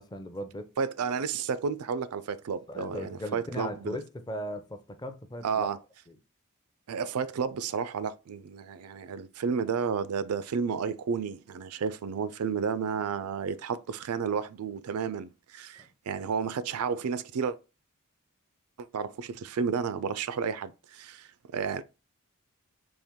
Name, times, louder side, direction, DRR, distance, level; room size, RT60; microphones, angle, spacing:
voice 1, 0.0-0.7 2.7-5.7 6.1-6.2, left 1 dB, 20° left, 0.5 m, -38 dB
voice 2, 0.8-4.0 5.4-5.8 6.9-17.6 18.9-21.8, right 6 dB, 80° right, 0.4 m, -32 dB
4.3 x 2.9 x 3.6 m
head